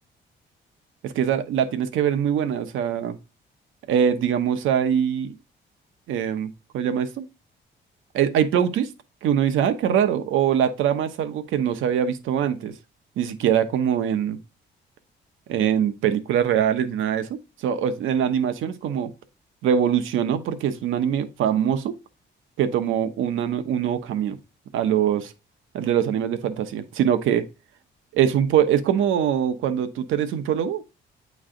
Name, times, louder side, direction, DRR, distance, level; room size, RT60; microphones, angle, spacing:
voice 1, 1.0-3.2 3.9-5.3 6.1-7.2 8.1-8.9 9.2-12.7 13.2-14.4 15.5-19.1 19.6-21.9 22.6-24.4 24.7-25.3 25.7-27.5 28.1-30.8, right 9 dB, 80° right, 0.9 m, -23 dB
8.7 x 3.2 x 3.7 m
cardioid pair, 90°, 20 cm